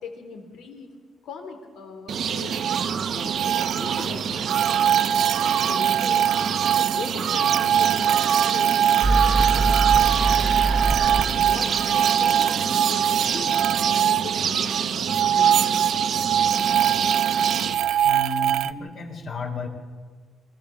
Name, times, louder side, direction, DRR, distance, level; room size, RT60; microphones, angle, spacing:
voice 1, 0.0-0.9 1.2-2.6 3.1-4.6 5.6-6.4 6.8-10.8 11.3-14.7 15.0-15.8, left 5 dB, 80° left, 4 dB, 3.6 m, -39 dB
sound 1, 2.1-17.7, right 7 dB, 50° right, 1.0 m, -27 dB
sound 2, 2.5-2.8 3.2-4.1 4.5-14.8 15.1-18.7, right 10 dB, 85° right, 0.5 m, -22 dB
sound 3, 9.0-11.8, right 2 dB, 30° right, 0.9 m, -24 dB
voice 2, 18.0-19.7, left 2 dB, 50° left, 2 dB, 3.5 m, -33 dB
24.0 x 15.0 x 7.2 m, 1.5 s
cardioid pair, 140°, 0 cm